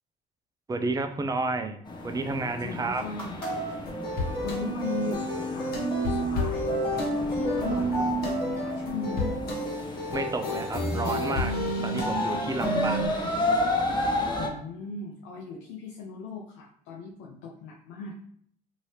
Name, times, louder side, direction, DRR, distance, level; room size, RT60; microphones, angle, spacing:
voice 1, 0.7-3.0 10.1-11.6 11.8-13.0, right 3 dB, 15° right, 7 dB, 0.4 m, -31 dB
sound 1, 1.9-14.5, left 2 dB, 20° left, 0.8 m, -33 dB
voice 2, 2.6-3.6 4.1-9.4 12.6-13.6 14.4-18.1, left 4 dB, 70° left, -1 dB, 0.5 m, -38 dB
sound 2, 2.7-4.5 5.5-5.6, right 1 dB, 5° left, 1.4 m, -48 dB
sound 3, 3.4-13.1, equal, 50° left, 1.2 m, -29 dB
2.7 x 2.7 x 3.1 m, 0.64 s
hypercardioid pair, 70°, 20 cm